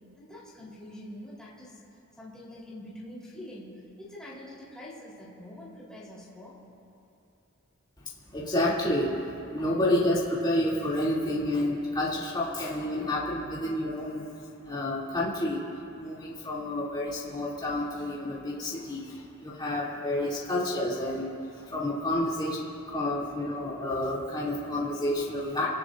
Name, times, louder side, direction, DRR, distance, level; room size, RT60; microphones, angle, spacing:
voice 1, 0.2-1.8 2.2-6.6, left 1 dB, 5° left, -8 dB, 4.0 m, -45 dB
voice 2, 8.3-14.3 14.6-15.7 16.0-25.7, left 1 dB, 20° left, -8 dB, 3.0 m, -29 dB
27.5 x 18.0 x 2.7 m, 2.8 s
head